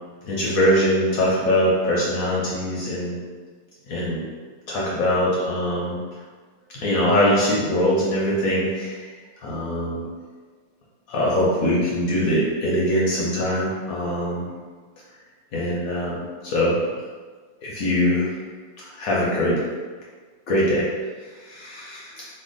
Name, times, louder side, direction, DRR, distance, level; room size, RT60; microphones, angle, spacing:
voice 1, 0.3-3.2 3.9-4.2 4.7-6.0 6.7-9.0 9.4-10.1 11.1-14.5 15.5-16.8 17.6-18.4 18.8-19.6 20.5-20.9 21.4-22.3, equal, 70° left, -5 dB, 0.8 m, -22 dB
3.4 x 2.2 x 3.7 m, 1.5 s
omnidirectional pair, 2.0 m